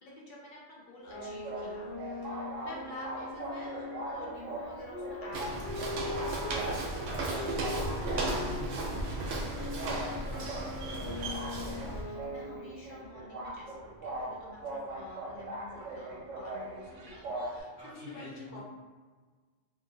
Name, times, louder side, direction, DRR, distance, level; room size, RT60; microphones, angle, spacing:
voice 1, 0.0-6.4 7.1-18.6, left 1 dB, 50° left, -4 dB, 0.7 m, -50 dB
sound 1, 1.0-6.6 7.3-12.7, left 3 dB, 25° left, 0.9 m, -41 dB
sound 2, 1.1-17.6, right 1 dB, 85° right, 1.0 m, -41 dB
Walk footsteps, 5.3-12.0, right 2 dB, 70° right, 0.8 m, -35 dB
voice 2, 8.3-9.1 10.1-10.6 17.8-18.6, equal, 75° left, -12 dB, 1.3 m, -45 dB
2.8 x 2.5 x 2.5 m, 1.4 s
omnidirectional pair, 1.2 m